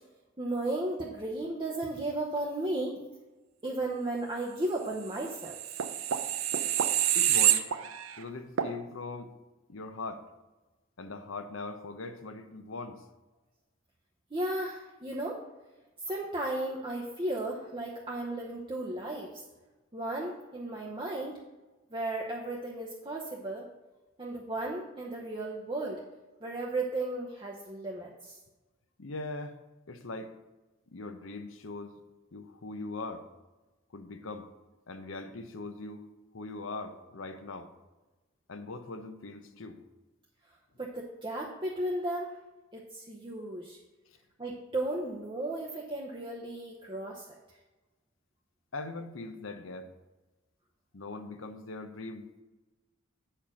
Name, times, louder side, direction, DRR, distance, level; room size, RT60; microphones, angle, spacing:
voice 1, 0.4-3.0 3.6-5.5 14.3-15.4 16.0-19.4 19.9-21.4 21.9-23.7 24.2-26.0 26.4-28.4 40.8-42.4 42.7-43.8 44.4-47.3, right 2 dB, 25° right, -2 dB, 0.8 m, -34 dB
sound 1, 5.3-8.2 8.6-8.7, right 11 dB, 85° right, 0.6 m, -27 dB
voice 2, 7.1-7.7 8.2-9.3 9.7-10.2 11.0-13.0 29.0-29.6 29.9-30.3 30.9-32.0 32.3-33.3 33.9-34.5 34.9-36.1 36.3-37.7 38.5-39.8 48.7-49.9 50.9-52.4, left 3 dB, 70° left, 8 dB, 0.8 m, -40 dB
8.5 x 4.4 x 6.2 m, 1.1 s
head